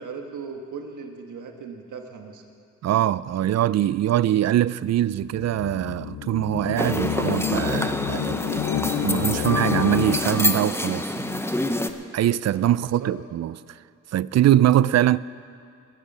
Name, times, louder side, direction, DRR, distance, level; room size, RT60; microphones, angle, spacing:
voice 1, 0.0-2.4 12.7-13.1, right 5 dB, 70° right, 1.6 m, -38 dB
voice 2, 2.8-8.4 8.8-11.4 12.1-13.8 14.1-15.2, right 12 dB, 55° right, 0.4 m, -22 dB
sound 1, 5.2-10.7, left 12 dB, 80° left, 0.5 m, -29 dB
sound 2, 6.8-11.9, left 1 dB, 10° left, 0.9 m, -27 dB
20.5 x 10.0 x 5.5 m
cardioid pair, 65°, 31 cm